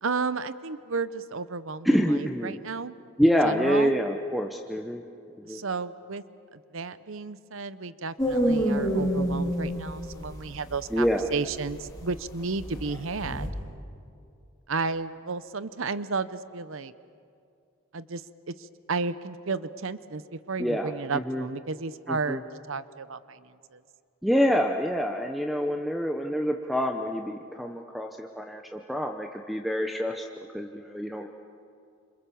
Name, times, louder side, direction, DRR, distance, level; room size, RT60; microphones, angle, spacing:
voice 1, 0.0-2.9 3.3-4.0 5.4-6.2 6.5-13.5 14.7-16.9 17.9-18.2 18.5-22.4 22.7-23.8, right 4 dB, 65° right, 15 dB, 0.8 m, -33 dB
voice 2, 1.8-2.6 3.2-5.0 5.5-5.6 10.9-11.3 20.6-21.4 22.1-22.4 24.2-30.2 30.5-31.3, equal, ahead, 3 dB, 0.8 m, -26 dB
sound 1, 8.2-13.5, equal, 15° left, 3.2 m, -27 dB
27.5 x 26.0 x 7.1 m, 2.5 s
head